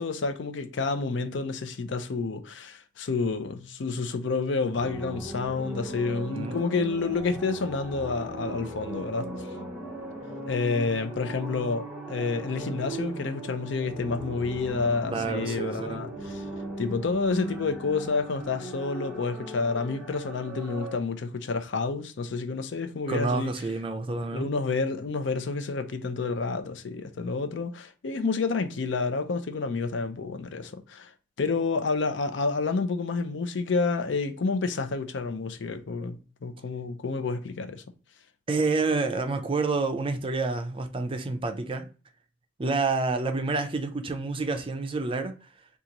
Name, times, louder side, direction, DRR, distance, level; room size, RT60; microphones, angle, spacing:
voice 1, 0.0-9.3 10.4-16.4 16.8-23.5 24.3-31.1 31.4-37.8, left 4 dB, 70° left, 0.5 m, -29 dB
sound 1, 4.7-21.0, right 2 dB, 5° right, 0.9 m, -38 dB
voice 2, 15.1-16.0 23.1-24.5 38.5-41.9 42.6-45.3, right 3 dB, 30° right, 0.4 m, -28 dB
3.8 x 2.4 x 2.9 m
head